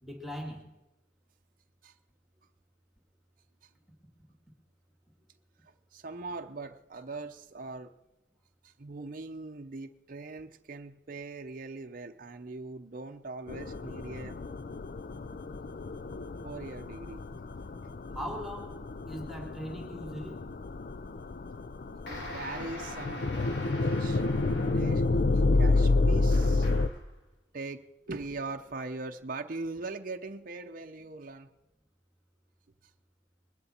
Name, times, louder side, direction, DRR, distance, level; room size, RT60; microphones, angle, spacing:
voice 1, 0.0-0.7 18.1-18.8 19.1-20.5, equal, ahead, 1 dB, 2.0 m, -39 dB
voice 2, 5.6-7.9 8.6-14.4 16.4-17.2 22.1-23.3 23.6-24.2 24.7-25.1 25.3-26.7 27.5-31.5, right 3 dB, 45° right, 5 dB, 0.7 m, -41 dB
sound 1, 13.5-26.9, left 3 dB, 50° left, 0.5 m, -30 dB
sound 2, 22.1-25.1 26.3-27.1, left 1 dB, 65° left, 2.9 m, -43 dB
21.0 x 15.0 x 4.4 m, 0.98 s
head